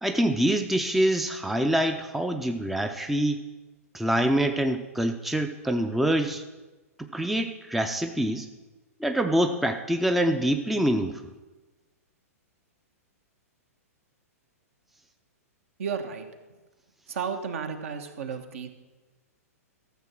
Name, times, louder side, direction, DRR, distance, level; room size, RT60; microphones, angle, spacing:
voice 1, 0.0-3.4 3.9-6.4 7.0-8.5 9.0-11.2, right 1 dB, ahead, 7 dB, 0.6 m, -25 dB
voice 2, 15.8-16.3 17.1-18.7, right 6 dB, 60° right, 6 dB, 1.4 m, -33 dB
13.5 x 7.1 x 6.1 m, 1.2 s
figure-of-eight pair, 110°, 8 cm